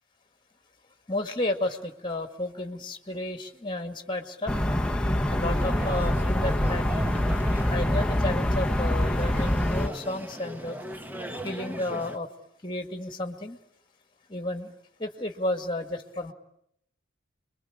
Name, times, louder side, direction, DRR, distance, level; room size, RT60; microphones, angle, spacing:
voice 1, 1.1-4.5 5.3-7.1 7.7-10.8 11.4-12.3 12.6-13.6 14.3-14.7 15.0-16.3, left 1 dB, 25° left, 6 dB, 2.0 m, -32 dB
sound 1, 4.5-9.9, left 1 dB, 5° left, 1.0 m, -25 dB
sound 2, 5.1-12.2, equal, 10° right, 1.4 m, -38 dB
27.5 x 23.0 x 8.8 m, 0.75 s
head